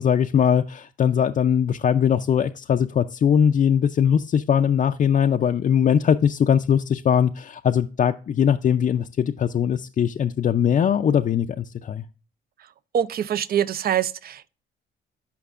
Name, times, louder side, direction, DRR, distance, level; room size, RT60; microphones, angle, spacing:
voice 1, 0.0-12.0, left 8 dB, 40° left, 0.4 m, -21 dB
voice 2, 12.9-14.5, right 9 dB, 50° right, 0.5 m, -24 dB
13.0 x 5.2 x 2.4 m
cardioid pair, 90°, 20 cm